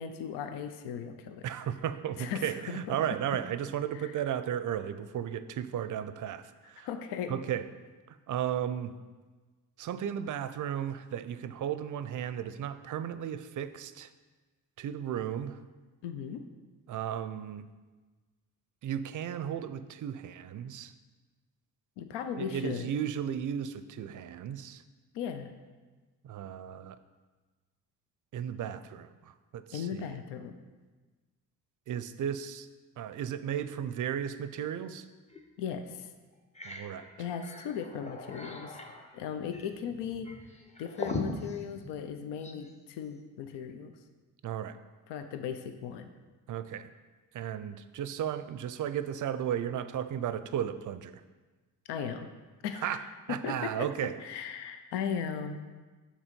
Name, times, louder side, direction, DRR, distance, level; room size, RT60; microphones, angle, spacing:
voice 1, 0.0-1.5 2.2-3.0 3.9-4.2 6.6-7.3 16.0-16.4 22.0-22.9 25.1-25.5 29.7-30.6 35.6-36.1 37.2-38.8 39.1-40.3 40.8-43.9 45.1-46.1 51.9-52.3 52.6-55.7, left 7 dB, 75° left, 8 dB, 0.6 m, -37 dB
voice 2, 1.4-6.4 6.7-6.9 7.3-7.6 8.1-8.9 9.8-14.1 14.8-15.6 16.9-17.6 18.8-20.9 22.4-24.8 26.2-27.0 28.3-29.1 29.5-30.2 31.9-32.7 33.0-35.0 36.6-37.1 44.4-44.8 46.5-46.9 47.3-51.1 52.8-53.0 53.3-54.1, right 9 dB, 45° right, 12 dB, 0.5 m, -34 dB
sound 1, 35.3-35.5 35.9-36.0 36.3-42.7, left 2 dB, 15° left, 0.8 m, -41 dB
6.1 x 4.0 x 5.2 m, 1.3 s
hypercardioid pair, 50°, 42 cm